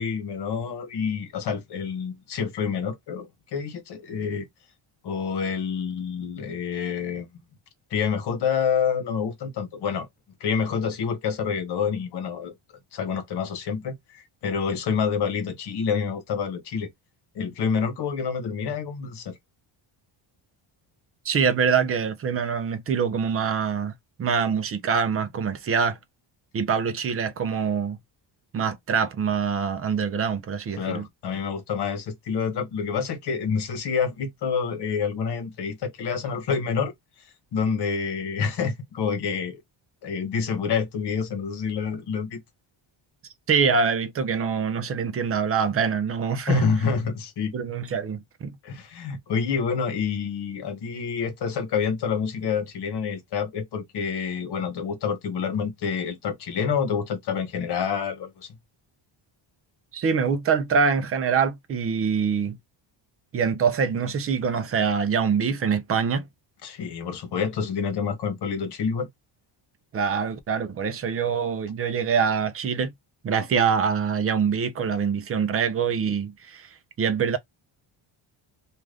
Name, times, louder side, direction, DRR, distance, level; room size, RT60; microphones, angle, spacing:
voice 1, 0.0-4.5 5.0-7.3 7.9-10.1 10.4-12.5 12.9-16.9 17.3-19.4 30.8-36.9 37.5-39.6 40.0-42.4 46.5-47.5 48.6-58.5 66.6-69.1, left 6 dB, 55° left, 0.9 m, -28 dB
voice 2, 21.2-23.9 24.2-26.0 26.5-28.0 28.5-31.1 43.5-46.6 47.5-48.5 59.9-62.6 63.3-66.3 69.9-72.9 73.2-77.4, right 6 dB, 30° right, 0.4 m, -24 dB
2.5 x 2.4 x 3.2 m
cardioid pair, 165°, 49 cm